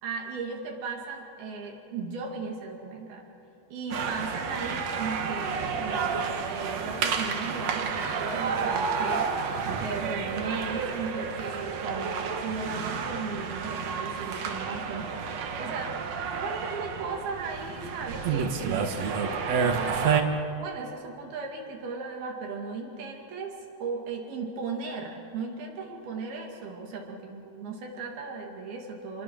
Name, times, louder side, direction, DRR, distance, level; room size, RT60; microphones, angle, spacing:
voice 1, 0.0-3.2 3.7-15.9 16.3-29.2, right 4 dB, 60° right, 1 dB, 4.0 m, -37 dB
sound 1, 3.9-20.2, right 6 dB, 80° right, 1.5 m, -30 dB
28.0 x 22.0 x 6.3 m, 2.7 s
omnidirectional pair, 5.3 m